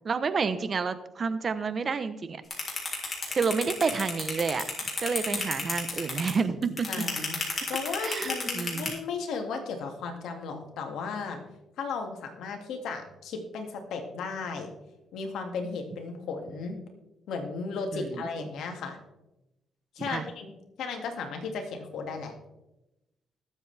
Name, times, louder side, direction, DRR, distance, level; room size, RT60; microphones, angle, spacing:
voice 1, 0.0-2.4 3.0-4.6 5.0-6.9 8.0-8.9 17.9-18.2 20.1-20.2, right 5 dB, 40° right, 13 dB, 0.9 m, -29 dB
sound 1, 2.5-8.9, left 3 dB, 35° left, 4.1 m, -31 dB
voice 2, 6.9-7.4 7.7-11.4 11.8-14.7 15.1-16.8 17.3-19.0 20.0-20.5 20.8-22.3, left 4 dB, 80° left, 4 dB, 2.1 m, -35 dB
20.5 x 7.7 x 3.4 m, 0.95 s
cardioid pair, 90°, 0 cm